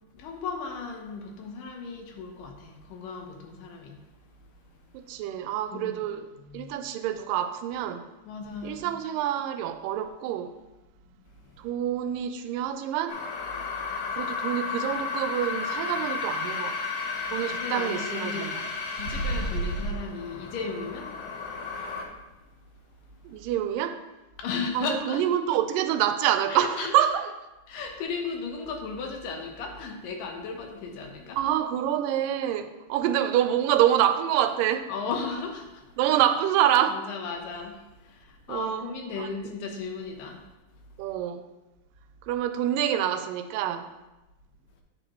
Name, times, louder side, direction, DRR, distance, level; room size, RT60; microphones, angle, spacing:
voice 1, 0.1-5.0 5.7-6.0 6.4-6.7 8.2-8.9 11.2-11.6 17.6-18.5 18.9-21.3 21.6-21.7 22.8-23.2 24.4-25.2 26.5-26.9 27.7-31.4 34.9-36.0 36.9-40.4, left 4 dB, 85° left, 2.7 m, -36 dB
voice 2, 4.9-6.2 6.5-8.0 8.6-10.5 11.6-13.2 14.1-16.8 17.3-18.7 23.3-24.0 24.8-27.3 31.4-34.9 36.0-37.0 38.5-38.9 39.2-39.3 41.0-41.4 42.3-43.9, right 11 dB, 90° right, 2.2 m, -26 dB
sound 1, 13.1-22.0, left 3 dB, 65° left, 1.6 m, -32 dB
9.3 x 6.5 x 3.0 m
omnidirectional pair, 3.8 m